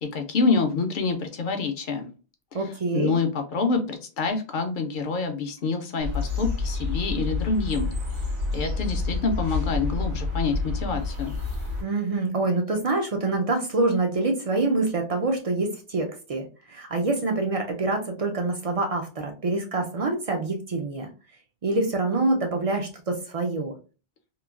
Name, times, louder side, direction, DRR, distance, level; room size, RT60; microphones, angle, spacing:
voice 1, 0.0-2.1 2.9-7.9 8.5-11.4, left 4 dB, 60° left, 5 dB, 0.6 m, -27 dB
voice 2, 2.5-3.1 11.8-21.1 21.6-23.7, right 2 dB, 65° right, 3 dB, 0.3 m, -26 dB
sound 1, 6.0-11.8, left 3 dB, 90° right, 1.3 m, -28 dB
3.0 x 2.2 x 2.3 m, 0.34 s
omnidirectional pair, 1.2 m